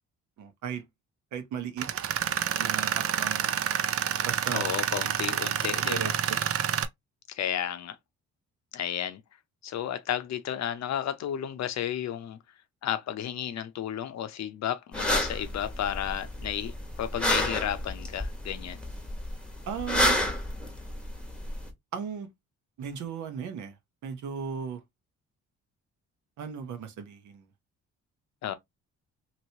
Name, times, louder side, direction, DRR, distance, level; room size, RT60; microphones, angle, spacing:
voice 1, 0.4-0.8 1.3-1.9 2.6-3.5 4.2-4.7 5.8-6.4 19.7-20.2 21.9-22.3 22.8-23.7 24.0-24.8 26.4-27.5, right 7 dB, 75° right, 1.0 m, -36 dB
Tools, 1.8-6.8, right 9 dB, 50° right, 0.5 m, -28 dB
voice 2, 4.5-6.2 7.3-8.0 8.7-9.2 9.6-12.4 12.8-16.7 17.0-18.8 28.4-28.5, left 10 dB, 60° left, 0.7 m, -32 dB
sound 1, 14.9-21.7, left 1 dB, 5° left, 1.1 m, -30 dB
3.0 x 2.9 x 2.8 m
cardioid pair, 90°, 30 cm